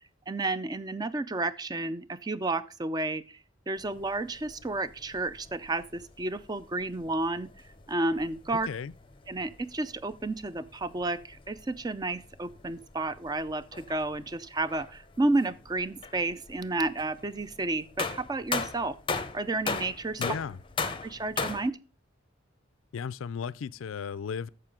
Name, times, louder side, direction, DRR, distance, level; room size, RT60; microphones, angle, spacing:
voice 1, 0.0-3.4 3.7-7.5 7.9-8.7 9.3-18.9 19.3-20.2 21.0-21.8, right 2 dB, 20° right, 0.4 m, -31 dB
sound 1, 3.8-21.7, left 4 dB, 25° left, 0.6 m, -40 dB
voice 2, 8.5-8.9 20.2-20.6 22.9-24.5, left 6 dB, 90° left, 0.4 m, -35 dB
8.9 x 6.6 x 3.7 m
head